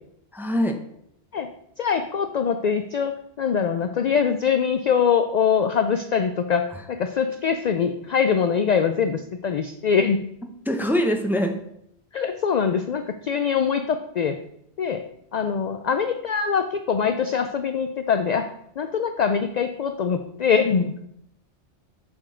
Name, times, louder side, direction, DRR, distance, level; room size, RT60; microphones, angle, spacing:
voice 1, 0.3-0.7 10.7-11.6, equal, ahead, 4 dB, 0.6 m, -23 dB
voice 2, 1.8-10.3 12.1-14.4 14.8-15.0 15.3-18.5 18.8-20.9, left 6 dB, 60° left, 8 dB, 0.4 m, -23 dB
7.4 x 4.4 x 5.0 m, 0.74 s
omnidirectional pair, 1.2 m